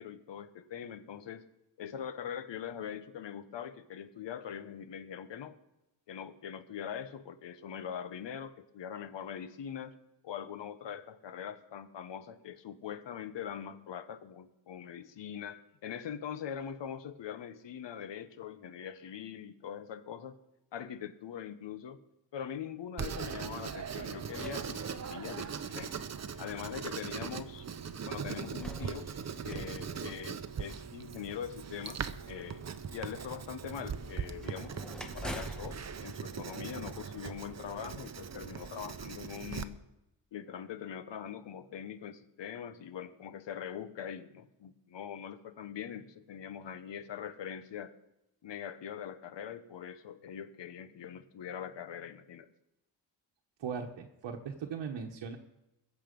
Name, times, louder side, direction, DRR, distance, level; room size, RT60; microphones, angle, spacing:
voice 1, 0.0-1.4 1.8-5.6 6.1-10.0 10.2-20.4 20.7-22.0 22.3-25.9 26.4-27.7 28.0-29.1 29.4-32.6 32.9-34.9 35.1-39.8 40.3-47.9 48.4-52.5, left 8 dB, 70° left, 12 dB, 1.1 m, -42 dB
Writing, 23.0-39.6, right 6 dB, 35° right, 0.7 m, -40 dB
sound 1, 23.6-25.5 26.3-26.4 28.2-30.8 34.2-37.3, equal, ahead, 1.2 m, -47 dB
voice 2, 53.6-55.4, right 6 dB, 75° right, 1 dB, 1.2 m, -39 dB
21.5 x 7.4 x 5.3 m, 0.91 s
wide cardioid pair, 120°, 45 cm